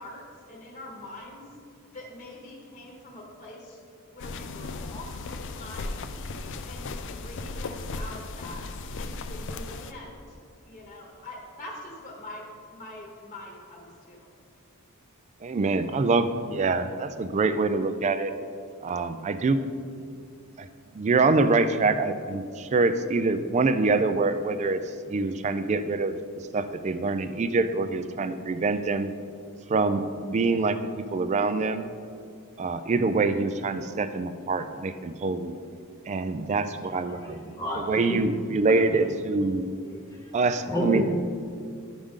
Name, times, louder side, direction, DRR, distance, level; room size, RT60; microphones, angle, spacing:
voice 1, 0.0-6.1 6.6-10.4 10.7-14.3, left 1 dB, 30° left, -1 dB, 1.0 m, -44 dB
sound 1, 4.2-9.9, left 3 dB, 55° left, 0.4 m, -36 dB
voice 2, 15.4-18.3 18.8-19.6 20.6-20.7 20.9-24.8 25.1-26.2 26.5-29.1 29.7-31.9 32.6-35.6 36.1-37.4 37.7-39.6 40.3-41.0, right 3 dB, 30° right, 10 dB, 0.3 m, -25 dB
voice 3, 36.9-38.3 38.7-39.1 39.8-40.3 40.7-41.0, equal, 15° left, -1 dB, 0.7 m, -32 dB
11.5 x 5.0 x 3.7 m, 2.3 s
head